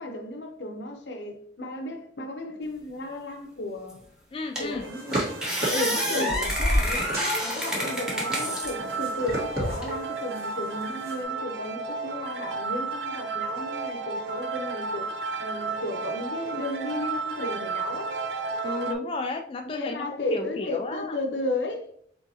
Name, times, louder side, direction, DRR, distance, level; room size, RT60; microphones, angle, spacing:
voice 1, 0.0-4.0 4.6-5.4 5.7-15.1 15.4-18.2 19.6-21.8, left 2 dB, 75° left, 0.9 m, -34 dB
sound 1, 3.9-4.0 4.6-4.8 5.1-8.7 9.3-9.9, equal, 5° right, 1.0 m, -27 dB
voice 2, 4.3-4.9 6.1-6.3 18.6-21.2, left 3 dB, 30° left, 0.3 m, -33 dB
sound 2, 4.8-11.2, right 2 dB, 55° right, 1.5 m, -36 dB
sound 3, 7.8-18.9, right 4 dB, 70° right, 0.5 m, -33 dB
4.5 x 4.0 x 2.8 m
head